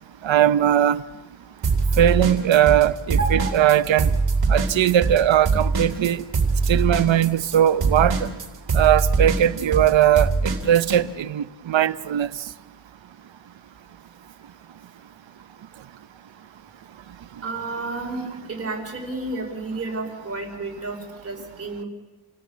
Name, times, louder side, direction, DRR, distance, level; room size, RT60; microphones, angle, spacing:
voice 1, 0.2-1.0 2.0-4.1 4.5-6.2 6.7-8.3 8.7-12.3, right 11 dB, 75° right, 0.8 m, -19 dB
sound 1, 1.6-2.9 3.1-11.0, right 4 dB, 55° right, 3.5 m, -22 dB
voice 2, 3.2-3.6 17.4-21.9, right 3 dB, 30° right, 5.1 m, -31 dB
29.0 x 18.5 x 8.6 m
wide cardioid pair, 170°, 45 cm